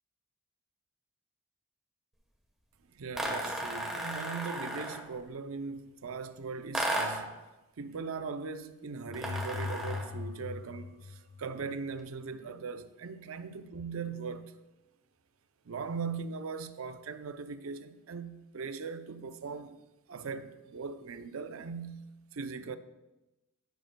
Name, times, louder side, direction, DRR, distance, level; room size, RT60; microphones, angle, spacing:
voice 1, 2.9-7.3 7.8-14.5 15.7-19.8 20.1-22.8, right 5 dB, 65° right, 0.5 m, -40 dB
sound 1, 3.1-5.1 6.7-7.3 9.1-10.2, right 1 dB, ahead, 1.1 m, -34 dB
sound 2, 9.1-12.0, left 4 dB, 30° left, 0.3 m, -40 dB
11.0 x 10.5 x 2.2 m
head